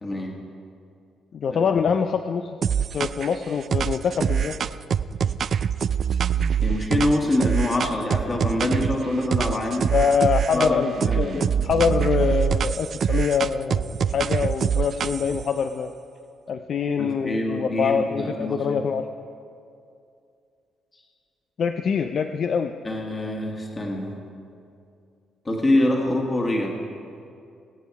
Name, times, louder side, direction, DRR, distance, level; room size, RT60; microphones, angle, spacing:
voice 1, 0.0-0.4 6.6-9.9 10.5-11.6 17.0-18.8 22.8-24.2 25.5-26.8, left 1 dB, 25° left, 0 dB, 1.7 m, -25 dB
voice 2, 1.3-2.6 2.9-4.6 5.2-5.3 9.9-15.9 16.5-19.1 21.6-22.7, left 6 dB, 55° left, 8 dB, 0.5 m, -24 dB
sound 1, 2.6-3.3 3.7-9.0 9.3-10.7 11.0-15.4, right 7 dB, 55° right, 0.3 m, -24 dB
21.0 x 8.3 x 4.7 m, 2.5 s
cardioid pair, 90°, 0 cm